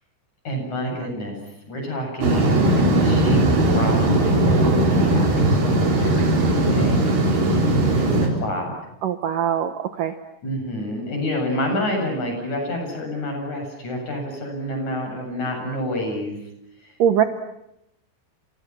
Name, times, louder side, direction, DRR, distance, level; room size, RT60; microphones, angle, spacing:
voice 1, 0.4-1.4 1.7-8.7 10.4-16.4 16.8-16.9, left 1 dB, 40° left, 3 dB, 9.0 m, -28 dB
sound 1, 2.2-8.3, right 1 dB, 55° right, 6.1 m, -18 dB
voice 2, 9.0-10.1 17.0-17.2, right 9 dB, 70° right, 8 dB, 2.2 m, -21 dB
30.0 x 29.5 x 6.0 m, 0.81 s
omnidirectional pair, 5.0 m